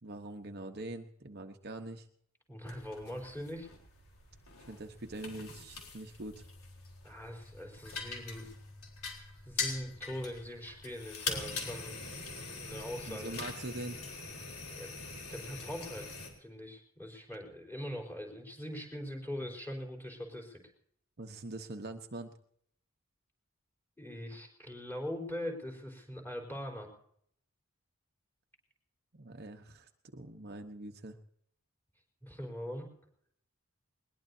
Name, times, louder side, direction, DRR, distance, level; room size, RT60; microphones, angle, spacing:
voice 1, 0.0-2.1 4.7-6.4 13.1-14.2 21.2-22.3 29.1-31.2, right 2 dB, 50° right, 5 dB, 1.1 m, -43 dB
voice 2, 2.5-3.7 7.0-8.5 9.4-11.9 12.5-13.4 14.7-14.9 15.3-20.6 24.0-26.9 32.2-32.9, equal, 10° left, 1 dB, 4.4 m, -42 dB
sound 1, 2.6-16.3, left 4 dB, 90° left, 4.0 m, -43 dB
21.0 x 20.5 x 2.8 m, 0.66 s
head